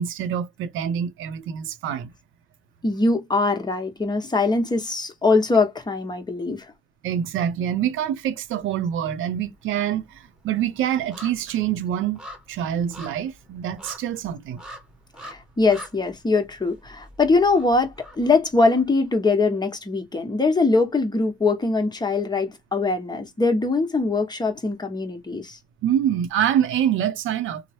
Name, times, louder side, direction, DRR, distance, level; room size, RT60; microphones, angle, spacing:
voice 1, 0.0-2.1 7.0-12.2 12.5-14.6 25.8-27.6, right 10 dB, 80° right, 0.5 m, -25 dB
voice 2, 2.8-6.7 15.2-25.6, left 3 dB, 20° left, 0.9 m, -22 dB
sound 1, 8.2-8.9 9.2-19.2 19.5-19.6, equal, 5° right, 1.1 m, -45 dB
3.1 x 2.0 x 2.7 m
cardioid pair, 90°, 20 cm